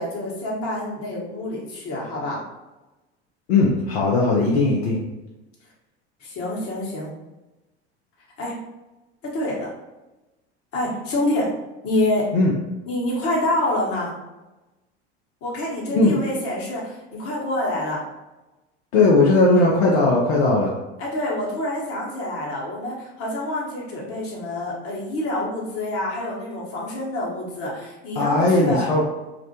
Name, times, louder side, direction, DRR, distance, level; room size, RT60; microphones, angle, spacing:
voice 1, 0.0-2.4 6.2-7.1 8.4-8.5 9.2-9.7 10.7-11.5 11.8-12.3 12.9-14.1 15.4-18.0 21.0-28.9, left 1 dB, 45° left, -4 dB, 1.0 m, -27 dB
voice 2, 3.5-5.0 12.3-12.5 15.9-16.1 18.9-20.7 28.2-29.0, left 2 dB, 70° left, -3 dB, 0.6 m, -18 dB
2.5 x 2.1 x 2.7 m, 1.1 s
hypercardioid pair, 75°, 33 cm